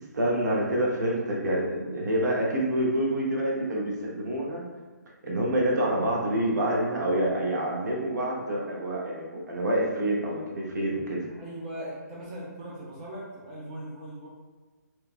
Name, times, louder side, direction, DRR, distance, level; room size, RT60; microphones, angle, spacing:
voice 1, 0.1-4.6 5.2-11.2, right 1 dB, 70° right, -3 dB, 0.9 m, -27 dB
voice 2, 11.3-14.3, right 1 dB, 20° right, -7 dB, 0.5 m, -39 dB
3.1 x 2.2 x 2.5 m, 1.3 s
hypercardioid pair, 165°, 10 cm